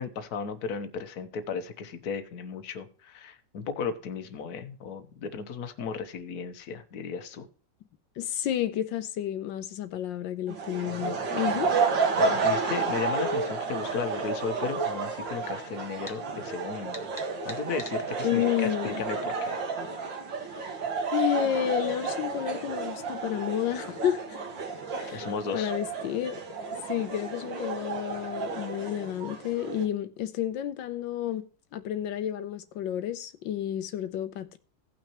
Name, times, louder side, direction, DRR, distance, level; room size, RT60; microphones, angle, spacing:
voice 1, 0.0-7.5 10.9-11.1 11.4-11.6 12.2-17.1 17.4-19.6 25.1-25.7, left 6 dB, 60° left, 1.5 m, -35 dB
voice 2, 8.2-11.7 18.2-19.0 20.5-20.8 21.1-24.4 24.9-25.3 25.5-26.4 26.9-31.5 31.7-34.6, left 11 dB, 85° left, 1.4 m, -31 dB
sound 1, 10.5-29.8, right 4 dB, 80° right, 2.4 m, -31 dB
sound 2, 16.1-16.2 16.9-18.0, left 1 dB, 10° left, 1.6 m, -42 dB
17.0 x 6.0 x 3.0 m
omnidirectional pair, 2.0 m